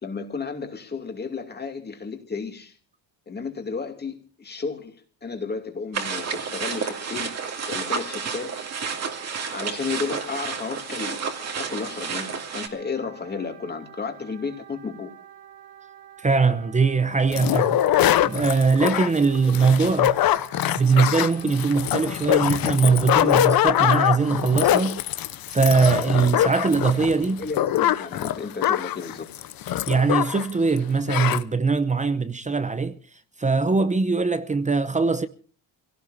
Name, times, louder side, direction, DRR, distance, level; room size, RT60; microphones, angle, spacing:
voice 1, 0.0-2.8 3.3-7.3 7.7-8.7 9.5-15.1 27.3-29.3, left 4 dB, 25° left, 2.7 m, -33 dB
sound 1, 5.9-12.7, right 5 dB, 35° right, 2.5 m, -31 dB
Wind instrument woodwind instrument, 6.7-22.6, right 10 dB, 70° right, 2.7 m, -48 dB
voice 2, 16.2-20.1 20.8-25.0 25.5-27.4 29.9-33.0 33.4-35.3, right 4 dB, 15° right, 0.7 m, -21 dB
sound 2, 17.3-30.5 30.8-30.9 31.1-31.4, left 12 dB, 55° left, 0.9 m, -23 dB
26.5 x 17.5 x 2.7 m
cardioid pair, 145°, 43 cm